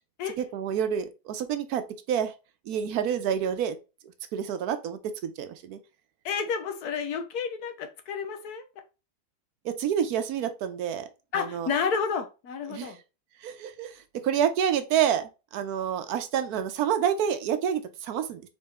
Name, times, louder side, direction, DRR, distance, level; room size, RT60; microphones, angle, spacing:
voice 1, 0.4-1.8 2.1-2.3 2.7-3.8 4.3-5.8 9.6-11.1 11.3-11.7 12.7-13.0 13.4-18.4, right 9 dB, 75° right, 1.1 m, -28 dB
voice 2, 6.2-8.7 11.3-13.0, left 6 dB, 75° left, 1.4 m, -30 dB
4.2 x 3.8 x 3.4 m
omnidirectional pair, 1.7 m